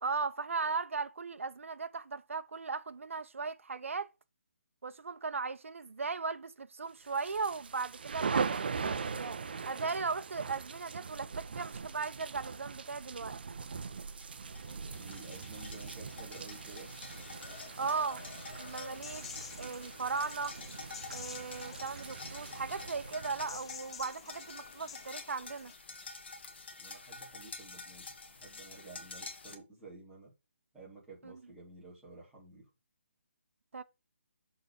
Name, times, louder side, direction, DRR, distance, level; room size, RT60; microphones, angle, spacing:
voice 1, 0.0-4.1 4.8-13.4 17.8-18.2 18.6-19.3 19.6-20.5 21.1-25.7 31.2-31.4 33.7-33.8, right 4 dB, 85° right, 0.7 m, -37 dB
sound 1, 7.1-24.0, right 5 dB, 50° right, 0.8 m, -41 dB
sound 2, 14.0-29.6, left 3 dB, 55° left, 1.6 m, -49 dB
voice 2, 14.9-16.9 26.8-30.3 30.7-32.7, right 3 dB, 5° right, 2.8 m, -52 dB
sound 3, 17.1-25.7, left 7 dB, 25° left, 0.3 m, -50 dB
6.7 x 4.0 x 6.3 m
hypercardioid pair, 175°, 7 cm